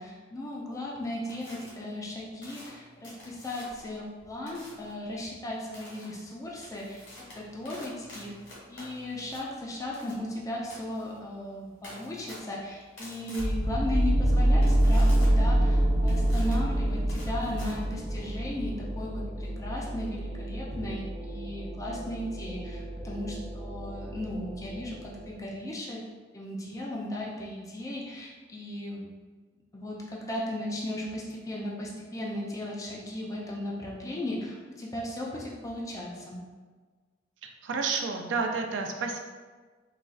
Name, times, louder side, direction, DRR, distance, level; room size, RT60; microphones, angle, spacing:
voice 1, 0.0-8.4 8.7-26.0 26.3-29.1 29.7-36.4, left 1 dB, 20° left, -3 dB, 0.4 m, -36 dB
sound 1, 1.3-1.7 2.4-3.9 4.5-4.9 5.7-6.0 6.5-18.4, left 1 dB, 70° left, 1.3 m, -48 dB
sound 2, 13.4-25.3, right 1 dB, 30° right, 0.8 m, -27 dB
voice 2, 37.4-39.2, right 4 dB, 75° right, 4 dB, 0.4 m, -30 dB
4.0 x 2.3 x 2.4 m, 1.4 s
head